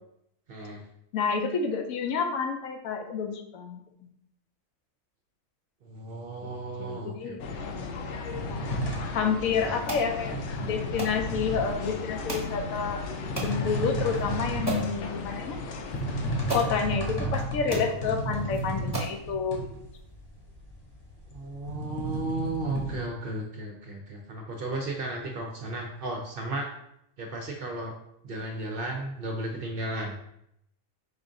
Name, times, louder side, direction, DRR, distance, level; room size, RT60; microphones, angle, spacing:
voice 1, 0.5-0.9 5.8-7.7 8.5-9.8 17.9-18.1 21.3-26.7 27.2-27.9 28.2-30.2, right 2 dB, 55° right, 1 dB, 0.6 m, -35 dB
voice 2, 1.1-3.8 6.4-6.5 6.8-7.4 8.5-8.8 9.1-10.4 10.6-13.0 13.4-15.6 16.5-19.6, left 6 dB, 85° left, 5 dB, 1.0 m, -29 dB
sound 1, 7.4-16.6, left 4 dB, 70° left, 0.8 m, -36 dB
sound 2, 8.3-23.0, right 1 dB, 20° left, 0.8 m, -33 dB
sound 3, 9.9-10.1 11.0-11.2 12.3-12.5 13.4-13.6 14.1-14.2 14.7-14.9 16.0-16.1 16.5-16.7 17.4-17.5 17.7-17.9 18.5-18.6 18.9-19.2, right 2 dB, 15° right, 0.9 m, -33 dB
4.9 x 2.5 x 3.7 m, 0.76 s
omnidirectional pair, 1.4 m